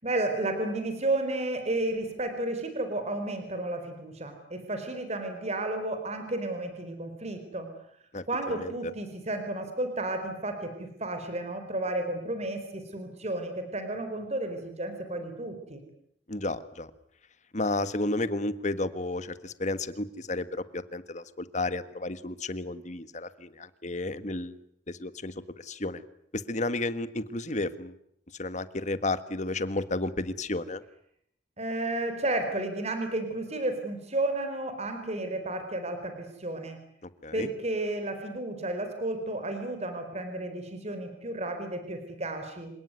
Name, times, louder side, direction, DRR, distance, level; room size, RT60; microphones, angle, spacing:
voice 1, 0.0-7.7 8.3-15.8 31.6-36.8 37.3-42.7, right 2 dB, 40° right, 7 dB, 4.3 m, -32 dB
voice 2, 8.1-8.7 16.3-16.9 17.5-20.5 20.7-24.6 24.9-26.0 26.3-28.0 28.4-30.8 37.0-37.5, left 2 dB, 40° left, 13 dB, 1.5 m, -32 dB
28.0 x 18.0 x 9.6 m, 0.72 s
head